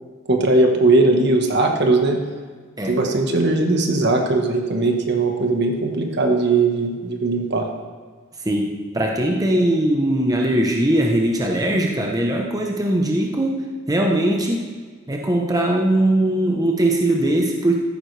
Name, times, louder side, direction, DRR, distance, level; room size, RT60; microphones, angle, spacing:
voice 1, 0.3-2.2 2.8-7.7, right 2 dB, 55° right, 3 dB, 1.4 m, -19 dB
voice 2, 8.4-13.6 13.9-14.7 15.1-17.8, right 1 dB, 20° right, 0 dB, 0.9 m, -20 dB
14.0 x 10.5 x 3.3 m, 1.5 s
head